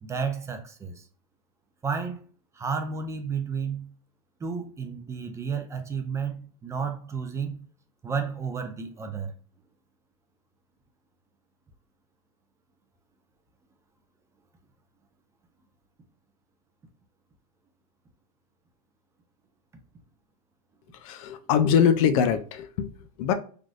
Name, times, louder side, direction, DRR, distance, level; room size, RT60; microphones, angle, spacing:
voice 1, 0.0-1.1 1.8-2.2 2.5-3.9 4.4-7.6 8.0-9.3, right 6 dB, 15° right, 0.4 m, -32 dB
voice 2, 20.9-22.9 23.2-23.3, left 8 dB, 65° left, 0.5 m, -23 dB
3.4 x 2.5 x 2.4 m
supercardioid pair, 130°, 19 cm